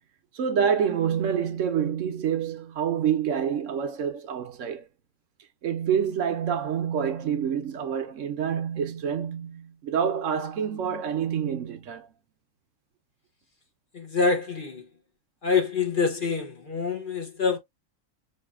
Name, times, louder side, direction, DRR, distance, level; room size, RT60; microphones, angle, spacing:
voice 1, 0.3-4.8 5.6-12.1, right 8 dB, 70° right, 1.0 m, -27 dB
voice 2, 13.9-14.8 15.4-17.6, left 5 dB, 45° left, 0.9 m, -26 dB
5.3 x 2.6 x 2.3 m
omnidirectional pair, 1.4 m